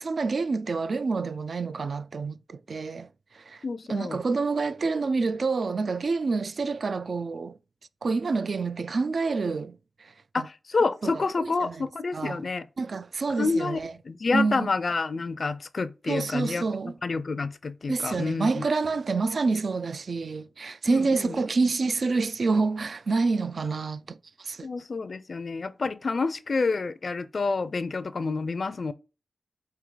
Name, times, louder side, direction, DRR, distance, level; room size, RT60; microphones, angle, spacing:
voice 1, 0.0-3.6 3.9-7.6 8.0-10.5 11.0-12.4 12.8-13.9 14.3-14.7 16.1-17.0 17.9-24.7, right 4 dB, 65° right, 0.3 m, -28 dB
voice 2, 3.6-4.2 10.3-12.7 13.4-13.8 14.0-16.6 17.0-18.6 20.9-21.4 24.6-28.9, left 4 dB, 55° left, 0.4 m, -28 dB
4.6 x 2.8 x 3.8 m
cardioid pair, 65°, 0 cm